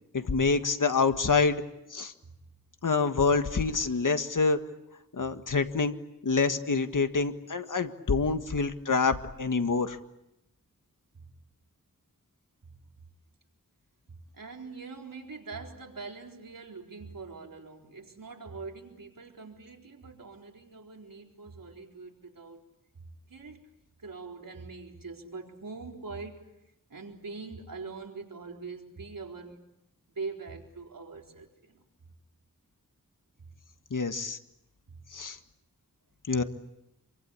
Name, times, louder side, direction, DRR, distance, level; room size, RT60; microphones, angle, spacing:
voice 1, 0.1-1.6 1.9-2.1 2.8-4.6 5.1-6.0 6.2-10.0 33.9-34.4 35.1-35.4 36.3-36.4, left 4 dB, 70° left, 8 dB, 1.7 m, -26 dB
voice 2, 14.1-22.6 23.3-23.7 24.0-26.4 26.9-29.6 30.1-31.8, right 4 dB, 85° right, 1 dB, 4.2 m, -43 dB
27.5 x 24.5 x 8.4 m, 0.85 s
wide cardioid pair, 75°, 33 cm